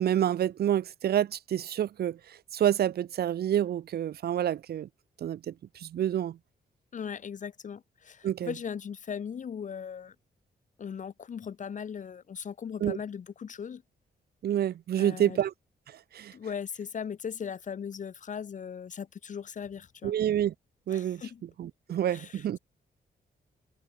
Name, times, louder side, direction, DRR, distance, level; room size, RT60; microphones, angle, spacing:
voice 1, 0.0-2.2 2.5-4.9 5.2-5.5 5.8-6.4 8.2-8.5 12.8-13.0 14.4-15.5 16.1-16.3 20.0-20.5 20.9-21.2 21.6-22.6, right 11 dB, 70° right, 0.8 m, -28 dB
voice 2, 6.9-10.2 10.8-13.8 15.0-15.4 16.3-20.2 20.9-21.4 22.1-22.6, left 7 dB, 50° left, 1.9 m, -38 dB
wide cardioid pair, 155°, 17 cm